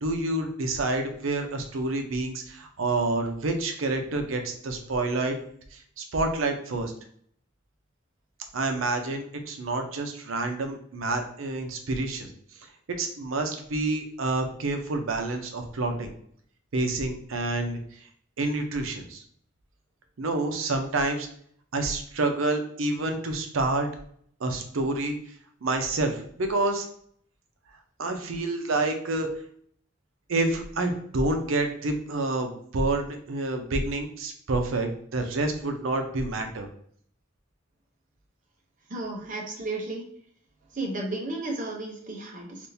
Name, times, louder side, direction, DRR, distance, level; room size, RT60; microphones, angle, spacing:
voice 1, 0.0-5.4 5.7-6.9 8.5-12.3 13.0-16.1 16.7-17.8 18.4-19.2 20.2-21.3 21.7-23.9 24.4-25.2 25.6-26.8 28.0-29.3 30.3-36.7, right 2 dB, 85° right, 6 dB, 0.6 m, -28 dB
voice 2, 38.9-40.0 40.7-42.6, right 2 dB, 40° right, 0 dB, 0.7 m, -33 dB
3.4 x 2.5 x 2.7 m, 0.62 s
head